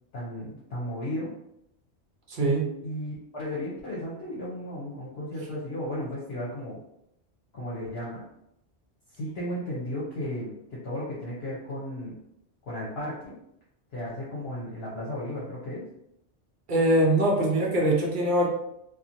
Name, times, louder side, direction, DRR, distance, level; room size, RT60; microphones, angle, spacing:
voice 1, 0.1-1.3 2.8-6.8 7.5-8.2 9.1-12.1 12.7-13.3 13.9-15.8, left 1 dB, 65° left, -7 dB, 1.0 m, -34 dB
voice 2, 2.3-2.7 16.7-18.5, right 1 dB, 55° right, -2 dB, 0.7 m, -22 dB
2.9 x 2.4 x 2.6 m, 0.80 s
omnidirectional pair, 1.2 m